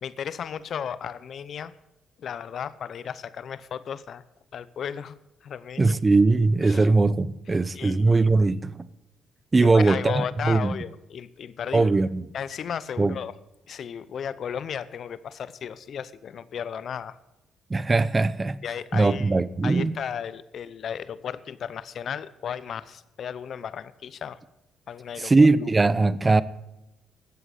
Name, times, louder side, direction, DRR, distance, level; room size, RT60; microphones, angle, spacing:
voice 1, 0.0-1.7 2.2-4.2 4.5-5.2 5.4-5.9 6.6-6.9 7.7-8.2 9.6-11.9 12.3-13.3 13.7-17.2 18.6-24.4 24.9-25.5, left 8 dB, 60° left, 16 dB, 0.7 m, -34 dB
voice 2, 5.8-8.9 9.5-10.7 11.7-12.2 13.0-13.2 17.7-18.6 18.9-19.9 25.2-26.4, right 3 dB, 25° right, 17 dB, 0.7 m, -20 dB
13.0 x 8.0 x 8.3 m, 0.96 s
cardioid pair, 90°, 0 cm